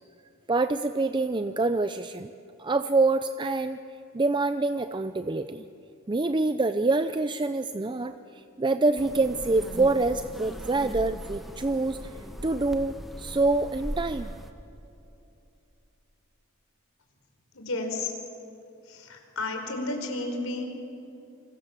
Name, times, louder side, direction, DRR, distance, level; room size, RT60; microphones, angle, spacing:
voice 1, 0.5-2.3 2.6-3.8 4.1-5.6 6.1-14.3, right 3 dB, 20° right, 10 dB, 0.5 m, -26 dB
sound 1, 9.0-14.5, equal, ahead, 1.6 m, -39 dB
voice 2, 17.5-18.1 18.8-20.7, left 2 dB, 80° left, 3 dB, 4.8 m, -32 dB
27.0 x 26.0 x 7.5 m, 2.7 s
head